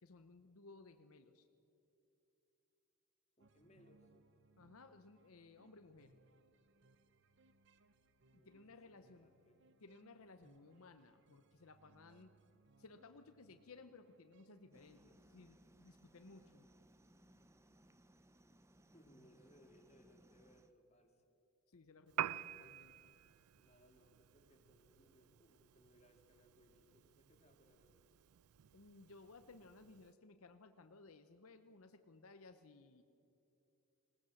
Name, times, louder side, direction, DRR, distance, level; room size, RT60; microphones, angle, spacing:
voice 1, 0.0-1.5 4.6-6.1 8.3-9.3 9.8-12.3 12.8-16.7 21.7-23.2 28.7-33.0, left 3 dB, 75° left, 8 dB, 0.8 m, -60 dB
voice 2, 3.4-4.1 8.4-9.6 18.9-21.2 23.6-28.1, equal, 30° left, 3 dB, 2.1 m, -68 dB
sound 1, 3.4-15.7, right 3 dB, 50° right, 0.7 m, -71 dB
sound 2, 14.7-20.7, right 1 dB, 10° right, 0.6 m, -67 dB
Piano, 22.1-30.1, right 11 dB, 85° right, 0.4 m, -49 dB
20.0 x 18.0 x 7.7 m, 2.8 s
head